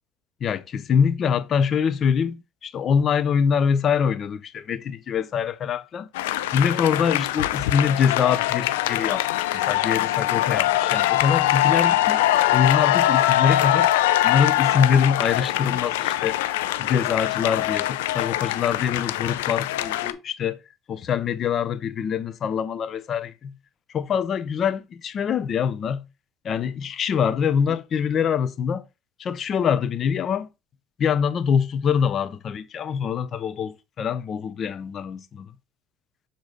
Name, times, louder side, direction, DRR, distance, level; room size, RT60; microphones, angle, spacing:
voice 1, 0.4-6.1 6.5-12.2 12.5-13.9 14.2-16.4 16.8-20.6 20.9-23.5 23.9-26.0 26.4-28.8 29.2-30.5 31.0-35.5, left 7 dB, 45° left, 0.7 m, -24 dB
sound 1, 6.1-20.1, left 14 dB, 85° left, 0.5 m, -23 dB
6.9 x 3.9 x 3.9 m
supercardioid pair, 80°, 0 cm